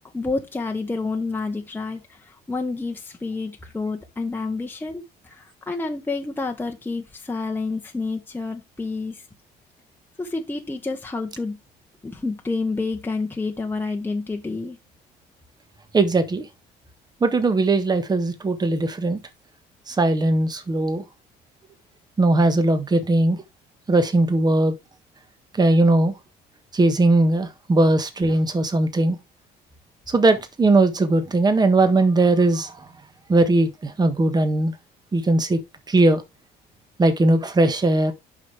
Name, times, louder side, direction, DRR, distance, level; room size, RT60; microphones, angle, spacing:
voice 1, 0.1-9.2 10.2-11.6 12.0-14.8, left 3 dB, 10° left, 1.1 m, -29 dB
voice 2, 15.9-16.5 17.2-19.2 19.9-21.0 22.2-23.4 23.9-24.7 25.5-26.1 26.7-29.2 30.1-32.9 33.3-34.7 35.1-35.6 35.9-36.2 37.0-38.1, right 2 dB, 25° right, 1.4 m, -19 dB
7.6 x 5.8 x 3.4 m
cardioid pair, 110°, 17 cm